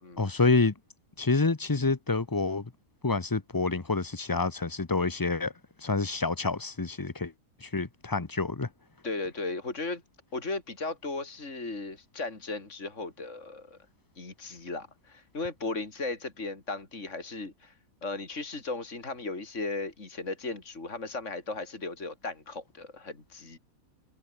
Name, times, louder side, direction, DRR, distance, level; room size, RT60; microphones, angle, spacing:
voice 1, 0.2-0.7 1.2-2.7 3.0-5.5 5.8-7.3 7.6-8.7, left 3 dB, 20° left, 0.6 m, -27 dB
voice 2, 9.0-10.0 10.3-13.8 14.2-17.7 18.0-23.6, left 3 dB, 45° left, 4.2 m, -36 dB
omnidirectional pair, 1.8 m